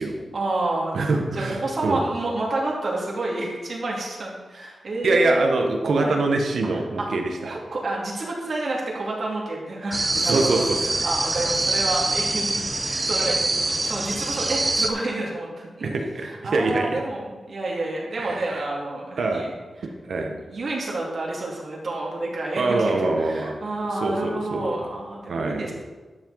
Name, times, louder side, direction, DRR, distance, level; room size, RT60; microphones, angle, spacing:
voice 1, 0.3-1.0 1.3-5.6 6.0-6.2 7.7-15.9 16.2-19.6 20.1-25.7, right 2 dB, 55° right, -3 dB, 2.5 m, -29 dB
voice 2, 0.9-2.0 5.0-7.6 10.2-10.8 15.8-17.0 18.2-18.6 19.2-19.4 20.1-20.3 22.6-23.6 23.9-24.7 25.3-25.7, right 3 dB, 75° right, 3 dB, 1.4 m, -24 dB
sound 1, 9.9-14.9, right 2 dB, 25° right, 0.8 m, -24 dB
12.0 x 7.6 x 4.1 m, 1.3 s
wide cardioid pair, 145°, 0 cm